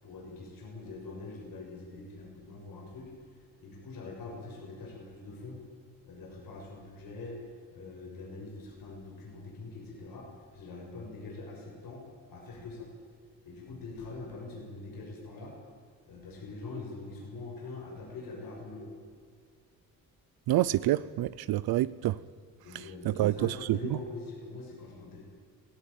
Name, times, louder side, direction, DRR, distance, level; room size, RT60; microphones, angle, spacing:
voice 1, 0.0-5.6 6.0-12.0 12.3-12.9 13.4-15.6 16.1-18.9 21.8-22.0 22.6-25.2, left 3 dB, 65° left, -2 dB, 6.8 m, -44 dB
voice 2, 20.5-22.1 23.2-23.5, right 15 dB, 75° right, 17 dB, 0.6 m, -27 dB
18.0 x 17.5 x 9.1 m, 2.1 s
cardioid pair, 145°, 37 cm